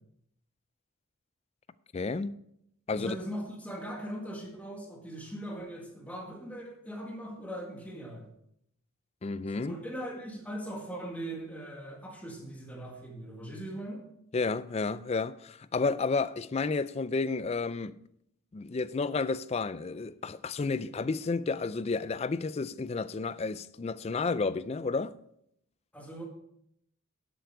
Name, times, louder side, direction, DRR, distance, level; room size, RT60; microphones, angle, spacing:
voice 1, 1.9-2.3 2.9-3.2 9.2-9.7 14.3-18.0 18.5-25.1, left 4 dB, 30° left, 0.3 m, -31 dB
voice 2, 2.9-8.3 9.5-14.0 25.9-26.3, right 1 dB, 5° left, 1.8 m, -40 dB
11.5 x 7.9 x 4.7 m
head